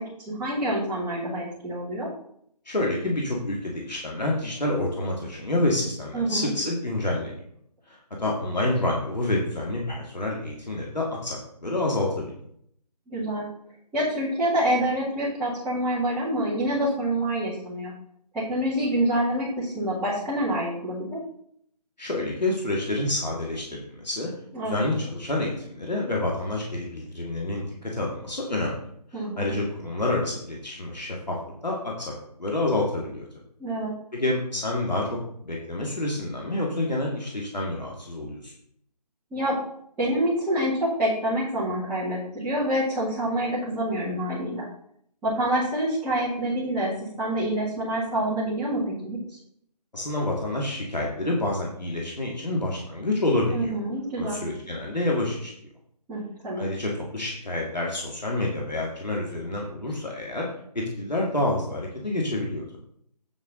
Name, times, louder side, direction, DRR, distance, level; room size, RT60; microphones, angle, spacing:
voice 1, 0.0-2.1 6.1-6.5 13.1-13.4 13.9-17.9 18.3-21.2 24.5-24.8 29.1-29.6 33.6-33.9 39.3-39.6 40.0-44.6 45.2-46.9 47.2-49.4 53.5-54.4 56.1-56.6, right 1 dB, 5° right, -13 dB, 2.0 m, -27 dB
voice 2, 2.7-7.4 7.9-12.3 22.0-24.3 24.6-28.8 29.4-31.4 31.6-32.1 32.4-33.3 34.1-38.5 49.9-53.8 54.2-55.5 56.6-60.5 60.7-62.6, left 2 dB, 80° left, -2 dB, 2.5 m, -28 dB
8.7 x 7.3 x 4.0 m, 0.68 s
figure-of-eight pair, 155°, 21 cm